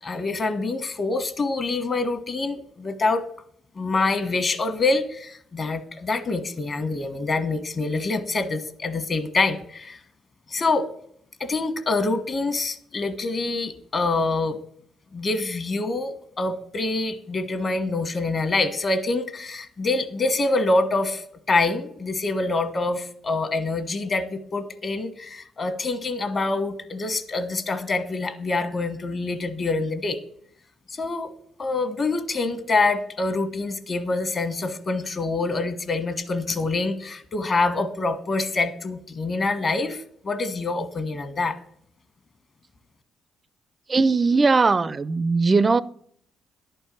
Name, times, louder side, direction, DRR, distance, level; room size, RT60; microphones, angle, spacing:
voice 1, 0.0-3.3 3.8-10.0 10.5-10.8 11.4-14.6 15.1-30.2 30.9-31.3 31.6-41.6, left 3 dB, 40° left, 1.3 m, -26 dB
voice 2, 43.9-45.8, right 4 dB, 30° right, 0.4 m, -19 dB
11.0 x 4.5 x 7.5 m
cardioid pair, 90°, 0 cm